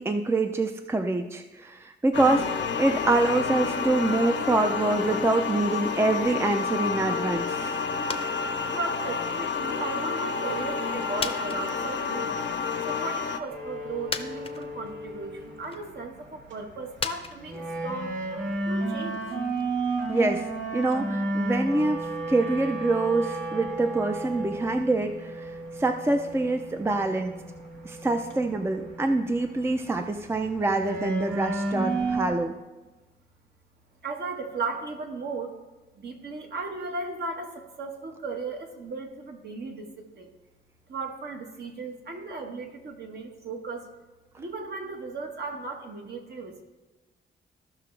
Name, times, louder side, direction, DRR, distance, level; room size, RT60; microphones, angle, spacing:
voice 1, 0.0-7.6 20.1-20.4 20.7-25.5 25.8-27.4 27.8-32.5, right 2 dB, 10° right, 6 dB, 0.5 m, -25 dB
sound 1, 2.1-13.4, left 5 dB, 70° left, 0.8 m, -29 dB
sound 2, 8.1-8.4 8.7-9.9 10.4-10.5 11.2-12.3 12.7-12.8 13.7-13.8 14.1-15.0 15.4-16.0 17.0-21.1 21.4-21.5, left 4 dB, 30° left, 0.7 m, -38 dB
voice 2, 8.7-12.4 12.8-18.2 18.7-19.3 34.0-35.5 36.0-40.3 40.9-43.9 44.4-46.6, right 3 dB, 55° right, 3 dB, 1.4 m, -36 dB
sound 3, 13.5-32.3, right 2 dB, 80° right, 1.9 m, -33 dB
14.5 x 5.9 x 3.3 m, 1.2 s
cardioid pair, 105°, 20 cm